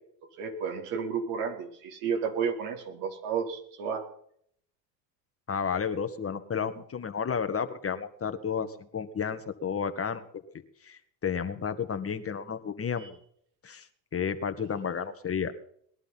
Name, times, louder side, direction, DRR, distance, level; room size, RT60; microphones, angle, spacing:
voice 1, 0.4-4.1 13.0-13.1, right 6 dB, 70° right, 3 dB, 4.8 m, -32 dB
voice 2, 5.5-10.4 10.8-13.1 13.6-13.9 14.1-15.5, left 6 dB, 25° left, 9 dB, 1.9 m, -32 dB
21.0 x 11.5 x 5.8 m, 0.66 s
hypercardioid pair, 85°, 50 cm